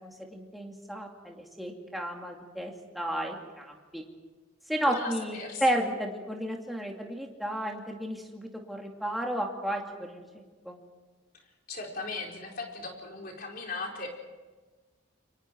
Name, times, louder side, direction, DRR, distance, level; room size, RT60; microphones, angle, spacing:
voice 1, 0.0-4.0 4.7-10.8, right 1 dB, ahead, 0 dB, 2.4 m, -33 dB
voice 2, 4.9-5.6 11.7-14.1, left 3 dB, 45° left, 0 dB, 4.6 m, -37 dB
29.5 x 24.5 x 4.6 m, 1.3 s
head